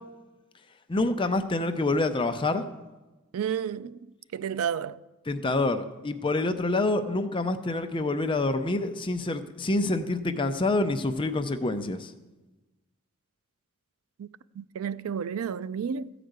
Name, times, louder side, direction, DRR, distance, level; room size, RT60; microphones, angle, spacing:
voice 1, 0.9-2.6 5.3-12.1, left 2 dB, 25° left, 0.6 m, -27 dB
voice 2, 3.3-4.0 4.3-5.0 14.2-14.3 14.6-16.1, right 7 dB, 85° right, 0.4 m, -31 dB
14.5 x 5.0 x 7.9 m
head